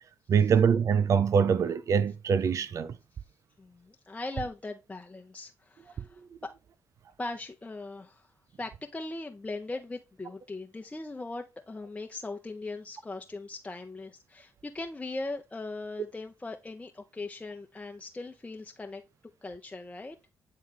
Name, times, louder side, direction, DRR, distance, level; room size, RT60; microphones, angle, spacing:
voice 1, 0.3-3.0, right 6 dB, 60° right, 0.6 m, -24 dB
voice 2, 3.6-6.5 7.2-8.3 8.6-19.0 19.4-20.2, left 2 dB, 20° left, 0.8 m, -39 dB
8.5 x 3.2 x 3.7 m
hypercardioid pair, 45°, 6 cm